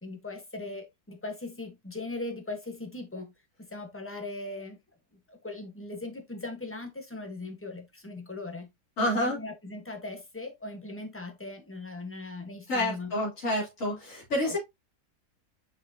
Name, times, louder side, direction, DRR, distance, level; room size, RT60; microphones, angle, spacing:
voice 1, 0.0-3.3 3.7-4.8 5.3-8.7 9.0-13.1 14.4-14.6, left 2 dB, 10° left, 1.2 m, -39 dB
voice 2, 9.0-9.4 12.7-14.6, left 1 dB, 55° left, 3.8 m, -28 dB
6.0 x 5.9 x 2.8 m
omnidirectional pair, 1.6 m